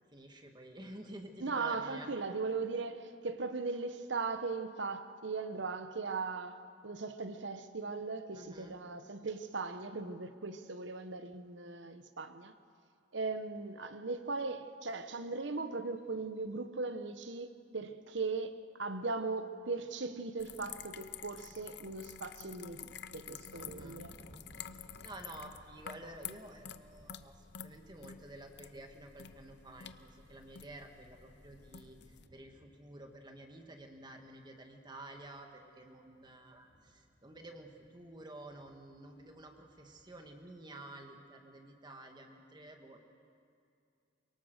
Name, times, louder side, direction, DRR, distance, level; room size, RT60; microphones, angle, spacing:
voice 1, 0.0-2.1 8.3-8.8 23.6-24.0 24.7-27.4 27.6-43.1, right 1 dB, 25° right, 1.6 m, -51 dB
voice 2, 1.4-12.5 13.1-24.2, right 3 dB, 65° right, 1.0 m, -38 dB
sound 1, 20.4-32.3, left 8 dB, 60° left, 0.7 m, -50 dB
sound 2, 22.4-40.5, equal, 50° right, 4.6 m, -65 dB
24.0 x 23.0 x 6.5 m
head